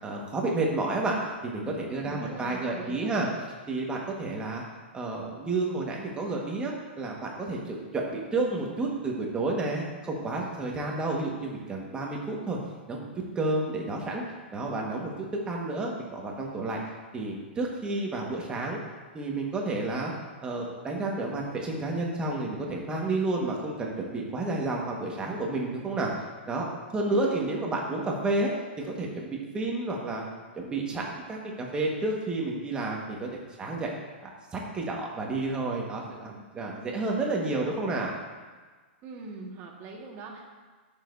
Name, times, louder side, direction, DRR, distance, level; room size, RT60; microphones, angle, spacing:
voice 1, 0.0-1.2 1.4-3.3 3.7-4.6 4.9-12.6 12.9-13.1 13.3-14.2 14.5-15.1 15.5-16.8 17.1-18.8 19.1-20.1 20.4-26.1 26.5-28.5 29.0-30.2 30.5-33.3 33.6-33.9 34.2-38.1, right 2 dB, 15° right, -1 dB, 1.5 m, -30 dB
voice 2, 1.9-3.1 27.1-27.8 39.0-40.5, right 3 dB, 35° right, 0 dB, 1.7 m, -42 dB
12.5 x 6.8 x 2.7 m, 1.4 s
hypercardioid pair, 140°, 6 cm